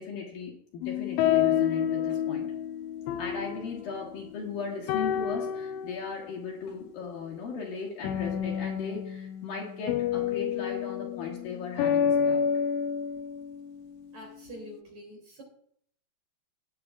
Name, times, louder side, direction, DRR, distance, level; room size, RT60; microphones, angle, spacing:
voice 1, 0.0-2.5 3.2-12.5, left 5 dB, 60° left, -3 dB, 2.9 m, -37 dB
sound 1, 0.8-4.5 4.9-6.3 8.0-13.9, left 9 dB, 85° left, 3.0 m, -29 dB
voice 2, 14.1-15.4, equal, 40° right, -1 dB, 3.5 m, -45 dB
19.0 x 8.6 x 2.4 m, 0.67 s
omnidirectional pair, 5.3 m